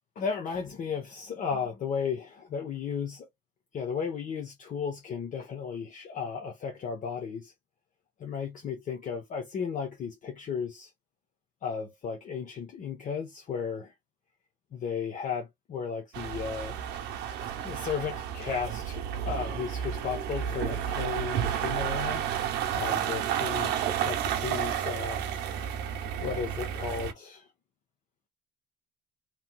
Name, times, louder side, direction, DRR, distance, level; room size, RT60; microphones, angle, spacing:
voice 1, 0.2-3.3 3.7-7.5 8.2-10.9 11.6-13.9 14.7-16.8 17.6-22.3 22.7-23.7 24.0-25.2 25.6-25.7 26.2-27.5, left 6 dB, 50° left, 0.9 m, -34 dB
sound 1, 16.1-27.1, right 9 dB, 85° right, 0.8 m, -31 dB
3.3 x 3.0 x 2.2 m
cardioid pair, 110°, 17 cm